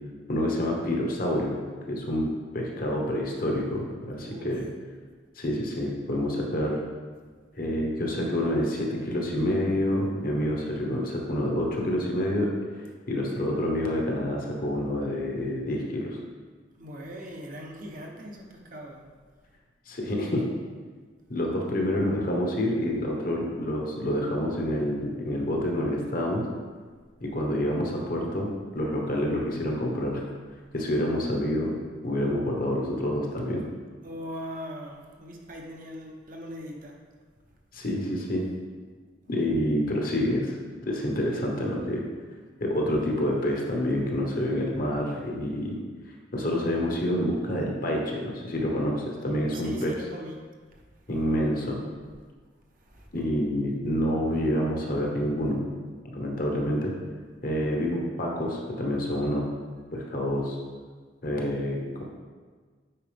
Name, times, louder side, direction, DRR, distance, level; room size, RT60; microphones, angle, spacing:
voice 1, 0.3-1.6 1.9-2.3 2.5-4.6 5.4-6.8 7.5-12.5 13.1-16.2 19.9-20.4 21.3-26.4 27.2-30.2 30.7-31.8 32.0-33.6 37.7-38.4 39.3-40.5 40.8-42.1 42.6-45.8 46.3-50.0 51.1-51.8 53.1-55.6 56.1-56.9 57.4-59.5 59.9-60.6 61.2-62.0, left 1 dB, 45° left, 0 dB, 1.1 m, -27 dB
voice 2, 4.2-4.6 16.8-19.1 34.0-37.0 39.3-39.4 49.5-50.4 50.7-51.2 52.8-53.3, equal, 45° right, 0 dB, 0.9 m, -41 dB
8.9 x 4.7 x 3.4 m, 1.5 s
head